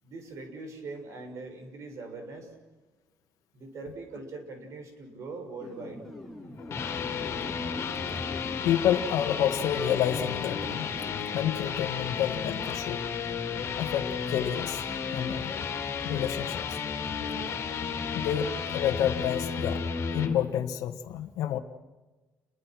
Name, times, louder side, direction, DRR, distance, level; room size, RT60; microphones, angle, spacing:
voice 1, 0.0-2.5 3.5-6.0, right 3 dB, 55° right, 5 dB, 6.6 m, -41 dB
sound 1, 5.6-11.3, left 1 dB, ahead, 5.8 m, -44 dB
sound 2, 6.4-20.4, left 6 dB, 50° left, 3.4 m, -33 dB
voice 2, 8.6-10.9 11.3-13.0 13.8-14.8 15.1-15.5 16.0-16.7 18.1-19.8 20.1-21.6, left 10 dB, 85° left, 5 dB, 1.5 m, -29 dB
29.5 x 22.5 x 6.2 m, 1.2 s
cardioid pair, 135°, 6 cm